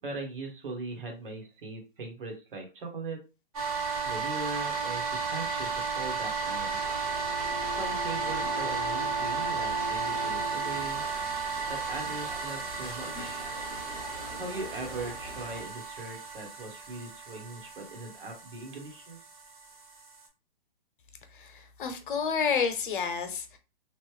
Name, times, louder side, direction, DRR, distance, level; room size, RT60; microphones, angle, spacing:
voice 1, 0.0-3.2 4.0-6.8 7.7-11.0 11.7-13.4 14.3-19.2, right 3 dB, 65° right, 1.4 m, -40 dB
sound 1, 3.5-20.3, right 5 dB, 40° right, 1.3 m, -34 dB
sound 2, 6.4-15.6, left 1 dB, ahead, 0.9 m, -45 dB
sound 3, 7.0-10.9, left 8 dB, 25° left, 0.7 m, -41 dB
voice 2, 21.3-23.6, left 6 dB, 60° left, 0.8 m, -30 dB
3.2 x 2.4 x 3.2 m
hypercardioid pair, 165°, 29 cm